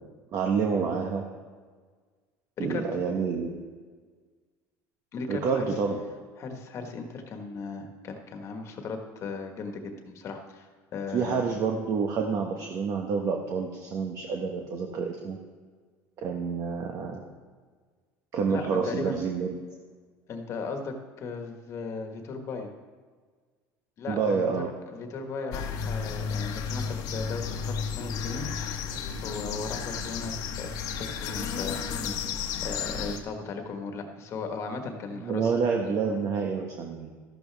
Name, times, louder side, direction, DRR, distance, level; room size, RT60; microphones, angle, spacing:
voice 1, 0.3-1.2 2.6-3.5 5.3-6.0 11.1-15.4 16.2-17.2 18.3-19.6 24.1-24.7 35.1-37.1, right 5 dB, 50° right, 2 dB, 1.1 m, -28 dB
voice 2, 2.6-2.9 5.1-5.7 6.4-10.7 10.9-11.4 18.5-19.2 20.3-22.7 24.0-24.5 24.9-28.9 29.2-35.5 35.8-35.9, left 4 dB, 45° left, 5 dB, 1.5 m, -37 dB
sound 1, 25.5-33.2, left 6 dB, 60° left, 1.2 m, -33 dB
13.0 x 12.0 x 3.5 m, 1.5 s
cardioid pair, 130°, 7 cm